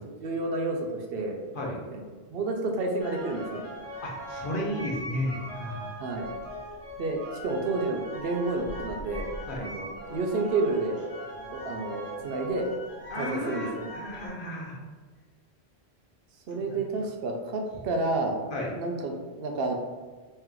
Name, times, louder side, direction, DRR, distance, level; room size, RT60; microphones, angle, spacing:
voice 1, 0.2-1.4 1.9-2.0 2.3-3.6 6.0-6.3 7.0-9.3 9.6-11.0 11.5-12.7 13.1-13.8 16.5-18.4 18.7-19.8, right 2 dB, 70° right, 2 dB, 0.8 m, -30 dB
sound 1, 3.0-14.3, equal, 40° left, 1.7 m, -40 dB
voice 2, 4.0-5.9 9.5-9.7 13.1-14.8 16.6-16.7 18.5-18.7, left 1 dB, 60° left, -2 dB, 0.9 m, -33 dB
3.2 x 2.9 x 3.7 m, 1.4 s
omnidirectional pair, 1.1 m